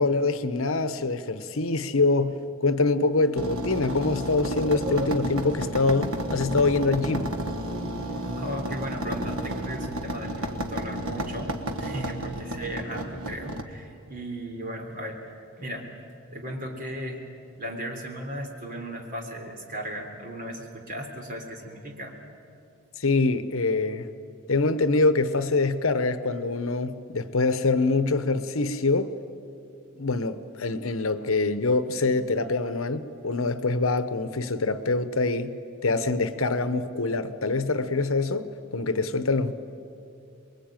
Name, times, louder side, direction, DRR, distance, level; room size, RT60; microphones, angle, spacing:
voice 1, 0.0-7.3 23.0-24.1 24.5-29.1 30.0-39.5, left 3 dB, 70° left, 1.0 m, -25 dB
sound 1, 3.3-13.6, right 1 dB, 85° right, 1.6 m, -32 dB
voice 2, 8.3-11.5 11.8-15.9 16.3-22.1, equal, 40° right, 3.6 m, -36 dB
25.0 x 22.0 x 9.1 m
head